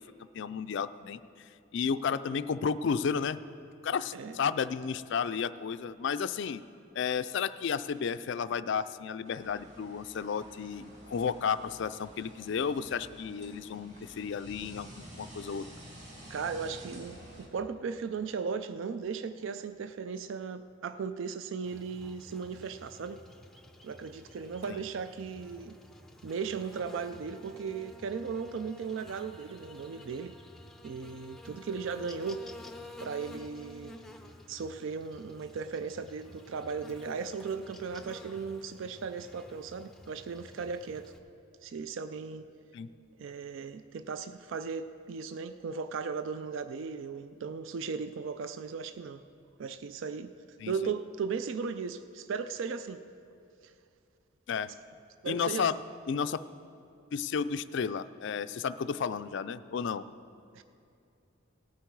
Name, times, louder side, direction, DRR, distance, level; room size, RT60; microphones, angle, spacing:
voice 1, 0.3-1.2 1.7-3.4 3.8-6.6 6.9-15.7 24.7-24.8 42.7-42.9 50.6-50.9 54.5-54.7 55.2-55.7 56.1-56.4 57.1-60.0, left 6 dB, 55° left, 13 dB, 0.3 m, -32 dB
sound 1, 9.2-17.5, equal, 35° right, 1.6 m, -50 dB
voice 2, 16.3-23.2 23.8-25.8 26.2-30.4 30.8-32.5 33.0-33.9 34.5-41.1 41.6-42.5 43.2-49.2 49.6-50.3 50.7-53.0 53.6-53.7 55.2-55.7 60.5-60.6, right 5 dB, 65° right, 11 dB, 0.4 m, -37 dB
Buzz, 21.6-41.2, left 1 dB, ahead, 0.5 m, -51 dB
18.0 x 8.3 x 4.6 m, 2.6 s
head